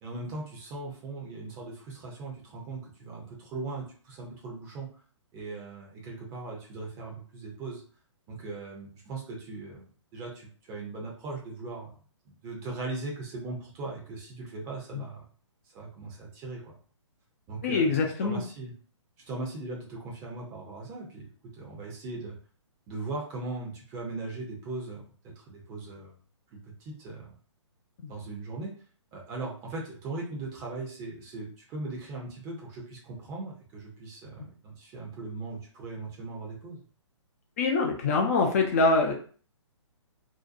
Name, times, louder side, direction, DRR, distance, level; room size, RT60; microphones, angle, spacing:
voice 1, 0.0-4.9 5.3-7.8 8.3-9.8 10.1-11.9 12.4-15.2 15.7-16.8 17.5-18.7 19.2-21.3 21.6-22.4 22.9-26.1 26.5-27.4 28.1-28.7 29.1-36.8, right 3 dB, 20° right, -2 dB, 0.6 m, -39 dB
voice 2, 17.6-18.4 37.6-39.1, left 3 dB, 30° left, 2 dB, 0.4 m, -24 dB
2.7 x 2.1 x 2.5 m, 0.42 s
figure-of-eight pair, 125°, 16 cm